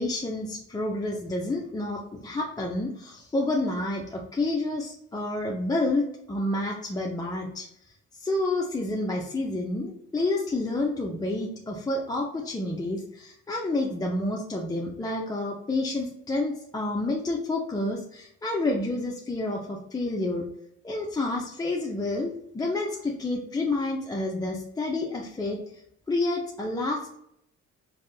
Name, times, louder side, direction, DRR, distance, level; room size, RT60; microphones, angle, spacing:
voice 1, 0.0-7.7 8.1-20.4 20.8-25.6 26.1-27.2, left 2 dB, 15° left, -1 dB, 0.4 m, -29 dB
3.3 x 2.1 x 2.6 m, 0.74 s
cardioid pair, 90°, 30 cm